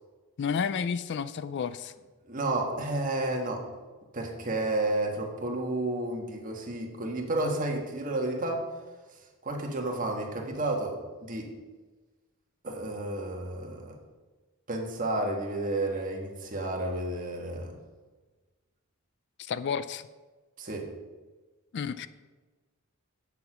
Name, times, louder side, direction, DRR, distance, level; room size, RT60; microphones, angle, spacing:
voice 1, 0.4-1.9 19.4-20.1 21.7-22.1, left 6 dB, 55° left, 15 dB, 0.4 m, -31 dB
voice 2, 2.3-3.6 4.1-8.6 9.4-11.5 12.6-14.0 14.7-17.7 20.6-20.9, right 2 dB, 40° right, 1 dB, 1.5 m, -31 dB
8.1 x 6.7 x 6.1 m, 1.3 s
head